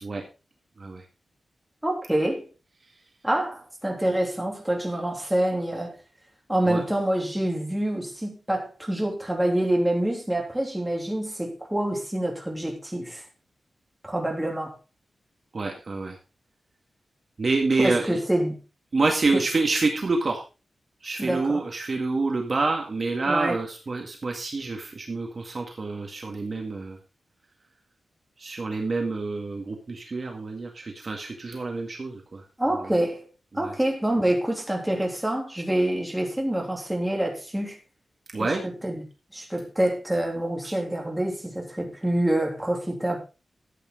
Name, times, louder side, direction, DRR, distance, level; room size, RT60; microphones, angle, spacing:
voice 1, 1.8-2.4 3.2-5.9 6.5-13.2 14.0-14.7 17.8-18.5 19.3-19.4 21.2-21.6 23.2-23.6 32.6-33.3 33.6-37.8 38.4-39.0 39.3-43.2, right 1 dB, 5° right, 3.2 m, -26 dB
voice 2, 15.5-16.2 17.4-18.2 18.9-20.4 21.0-27.0 28.4-32.4 32.7-32.9 33.5-33.7 38.3-38.6 40.6-40.7, right 3 dB, 40° right, 1.9 m, -27 dB
13.5 x 8.7 x 3.9 m
wide cardioid pair, 155°, 0 cm